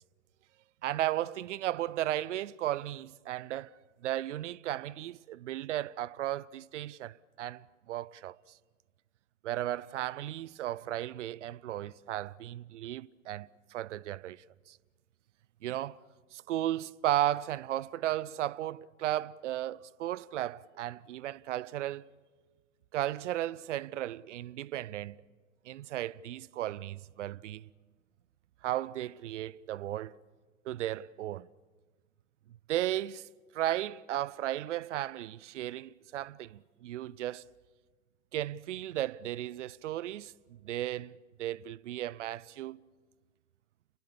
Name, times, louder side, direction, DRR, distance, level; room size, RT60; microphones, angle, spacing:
voice 1, 0.8-3.7 4.0-8.4 9.4-14.8 15.6-16.0 16.3-22.1 22.9-25.2 25.7-27.7 28.6-30.2 30.7-31.5 32.7-33.3 33.5-37.4 38.3-42.8, right 13 dB, 60° right, 0.7 m, -35 dB
30.0 x 21.0 x 7.1 m
figure-of-eight pair, 105°, 41 cm